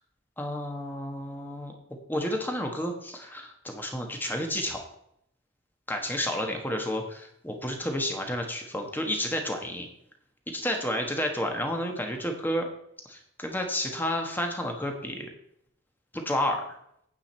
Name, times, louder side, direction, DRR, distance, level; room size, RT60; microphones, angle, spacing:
voice 1, 0.4-1.7 2.1-4.8 5.9-9.9 10.5-12.7 13.0-15.3 16.1-16.7, left 1 dB, 10° left, 3 dB, 1.3 m, -31 dB
9.0 x 8.6 x 4.4 m, 0.72 s
head